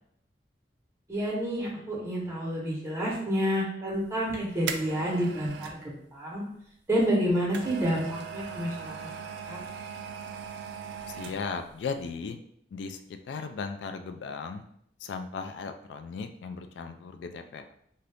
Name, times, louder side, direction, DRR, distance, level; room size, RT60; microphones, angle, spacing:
voice 1, 1.1-6.4 6.9-8.9 9.5-9.6, equal, 15° right, -5 dB, 1.0 m, -29 dB
sound 1, 4.1-5.8 7.0-11.7 12.0-12.1, right 7 dB, 75° right, 0.3 m, -39 dB
voice 2, 11.1-12.4 12.7-13.0 13.3-14.6 15.0-17.7, left 5 dB, 75° left, 7 dB, 0.3 m, -36 dB
2.7 x 2.5 x 3.4 m, 0.70 s
head